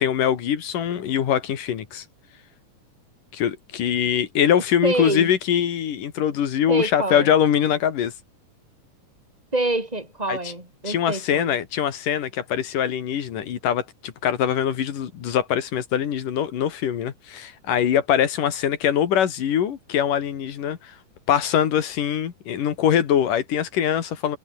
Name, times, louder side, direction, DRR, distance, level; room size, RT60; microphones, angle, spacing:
voice 1, 0.0-2.1 3.3-8.1 10.3-10.5 10.9-21.0 21.3-24.4, left 9 dB, 80° left, 3.8 m, -23 dB
voice 2, 4.8-5.3 6.7-7.3 9.5-11.6, right 2 dB, 10° right, 6.8 m, -26 dB
omnidirectional pair, 3.7 m